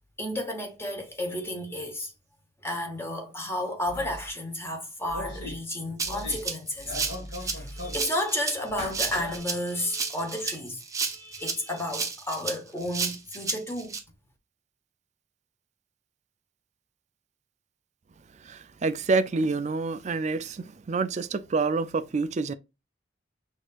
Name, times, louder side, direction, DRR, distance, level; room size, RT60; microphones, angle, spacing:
voice 1, 0.2-2.1 2.6-6.9 7.4-10.8 11.1-13.9, left 1 dB, 15° left, 1.0 m, -32 dB
sound 1, 3.8-4.3 5.0-5.6 6.0-6.5 6.8-8.0 8.7-9.4, left 1 dB, 50° left, 2.7 m, -38 dB
Rattle (instrument), 6.0-14.0, right 5 dB, 15° right, 0.8 m, -32 dB
voice 2, 18.4-22.5, right 3 dB, 40° right, 0.4 m, -27 dB
6.1 x 2.7 x 2.4 m
head